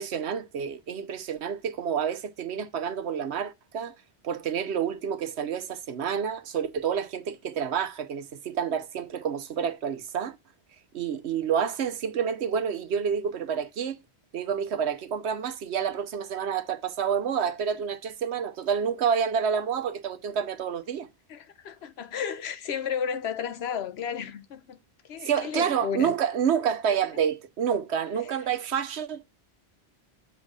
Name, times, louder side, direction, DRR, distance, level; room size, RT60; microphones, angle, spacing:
voice 1, 0.0-3.9 4.2-10.3 10.9-14.0 14.3-21.1 25.2-29.3, right 7 dB, 85° right, 1.1 m, -28 dB
voice 2, 21.3-24.8 25.1-26.1, left 7 dB, 75° left, 1.0 m, -33 dB
7.4 x 3.5 x 6.2 m
omnidirectional pair, 1.1 m